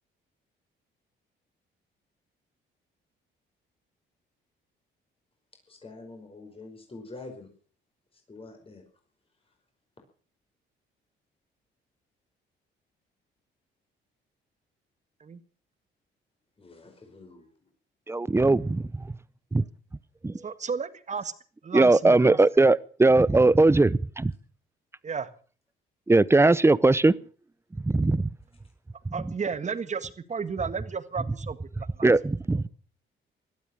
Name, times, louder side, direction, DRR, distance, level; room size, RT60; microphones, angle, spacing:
voice 1, 5.7-7.5 8.3-8.8 16.6-17.5, left 3 dB, 30° left, 5.2 m, -45 dB
voice 2, 18.1-18.8 19.5-19.6 20.2-20.3 21.7-24.3 26.1-27.1 27.8-28.3 32.0-32.7, right 2 dB, 15° right, 0.7 m, -20 dB
voice 3, 20.4-21.3 21.6-22.4 25.0-25.3 29.1-32.1, right 5 dB, 35° right, 1.6 m, -33 dB
17.5 x 12.5 x 6.4 m
cardioid pair, 90°, 20 cm